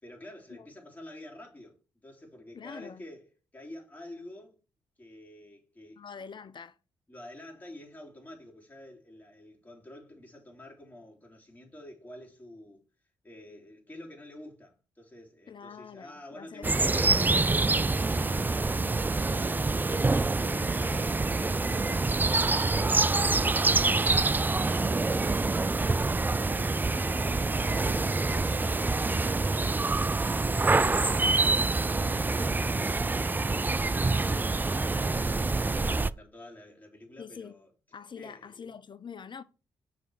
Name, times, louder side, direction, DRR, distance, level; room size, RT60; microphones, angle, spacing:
voice 1, 0.0-4.6 5.0-6.4 7.1-12.8 13.2-17.4 17.9-23.2 23.7-31.2 31.5-37.7 38.2-38.8, left 1 dB, 15° left, 3.4 m, -48 dB
voice 2, 2.5-3.0 6.0-6.8 15.5-17.2 37.2-37.5 37.9-39.4, left 6 dB, 40° left, 0.6 m, -45 dB
sound 1, 16.6-36.1, right 3 dB, 15° right, 0.3 m, -26 dB
6.3 x 4.9 x 4.7 m
hypercardioid pair, 40°, 12 cm